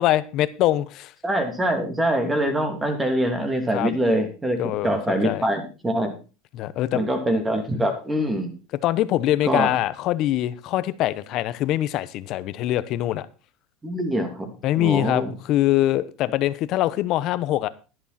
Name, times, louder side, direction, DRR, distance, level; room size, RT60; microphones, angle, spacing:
voice 1, 0.0-1.1 3.7-3.9 4.6-5.4 6.5-7.0 8.8-13.3 14.6-17.7, left 14 dB, 55° left, 1.0 m, -23 dB
voice 2, 1.2-6.2 6.9-8.5 9.4-9.7 13.8-15.3, right 1 dB, 15° right, 3.1 m, -24 dB
11.0 x 11.0 x 4.3 m
supercardioid pair, 120°, 0 cm